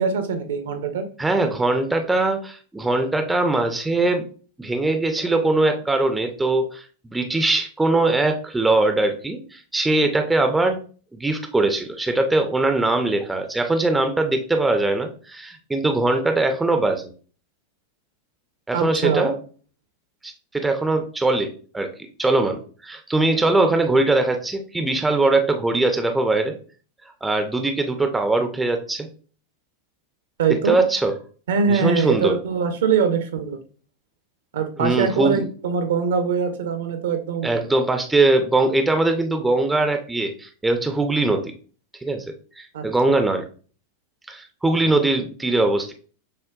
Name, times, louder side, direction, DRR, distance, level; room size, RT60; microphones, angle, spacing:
voice 1, 0.0-1.0 18.7-19.3 30.4-30.8 31.5-33.6 34.5-37.6 42.7-43.2, right 6 dB, 60° right, 7 dB, 0.5 m, -23 dB
voice 2, 1.2-4.3 4.6-10.8 11.1-17.1 18.7-19.4 20.2-26.6 27.2-29.1 30.6-31.1 31.7-32.4 34.8-35.5 37.4-41.5 42.0-43.5 44.3-45.9, right 2 dB, 10° right, 6 dB, 0.4 m, -21 dB
6.4 x 2.2 x 2.3 m, 0.40 s
figure-of-eight pair, 90°, 0 cm